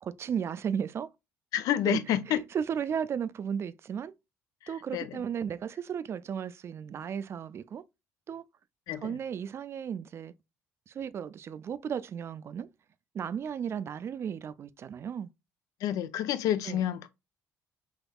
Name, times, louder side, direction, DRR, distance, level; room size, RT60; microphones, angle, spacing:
voice 1, 0.0-1.1 1.8-2.0 2.3-4.1 4.7-7.8 8.3-8.4 9.0-10.3 10.9-12.7 13.1-15.3 16.7-16.8, right 7 dB, 45° right, 0.3 m, -34 dB
voice 2, 1.5-2.4 4.9-5.2 8.9-9.2 15.8-17.1, left 11 dB, 70° left, 0.5 m, -29 dB
3.5 x 3.1 x 2.3 m
supercardioid pair, 75°, 6 cm